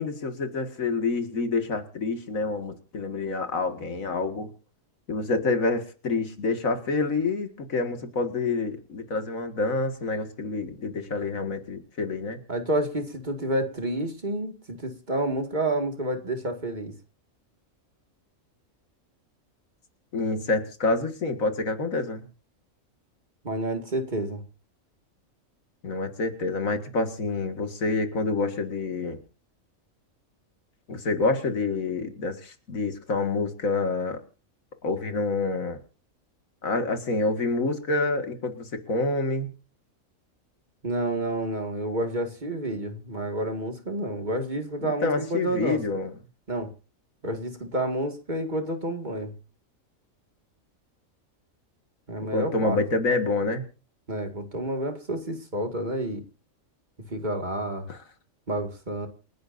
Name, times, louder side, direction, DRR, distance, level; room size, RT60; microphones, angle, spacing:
voice 1, 0.0-4.5 5.1-12.4 20.1-22.3 25.8-29.2 30.9-34.2 34.8-35.8 36.6-39.5 44.8-46.1 52.3-53.6 57.9-58.0, left 3 dB, 80° left, 7 dB, 2.3 m, -27 dB
voice 2, 12.5-16.9 23.4-24.4 40.8-45.8 46.5-46.7 47.2-49.3 52.1-52.8 54.1-56.2 57.1-57.9 58.5-59.1, right 1 dB, 35° right, 5 dB, 2.2 m, -29 dB
28.0 x 10.5 x 2.6 m, 0.35 s
omnidirectional pair, 1.4 m